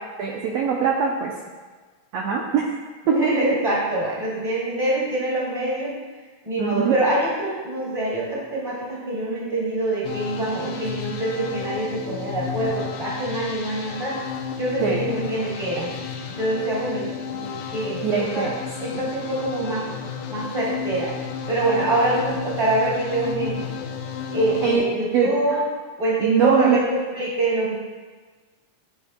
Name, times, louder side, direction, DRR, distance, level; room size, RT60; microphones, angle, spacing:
voice 1, 0.2-1.3 2.1-2.7 3.1-3.4 6.6-7.0 14.8-15.1 18.0-18.6 18.9-19.0 24.6-24.8 25.1-25.6 26.2-26.8, right 6 dB, 90° right, -1 dB, 1.4 m, -22 dB
voice 2, 3.1-6.0 6.4-14.2 14.6-16.0 16.4-18.5 18.8-19.8 20.3-21.1 21.5-23.7 24.3-25.6 26.0-27.7, right 1 dB, 15° right, -7 dB, 2.2 m, -25 dB
sound 1, 10.0-24.8, left 6 dB, 75° left, 1.9 m, -33 dB
12.5 x 7.1 x 2.2 m, 1.4 s
omnidirectional pair, 3.7 m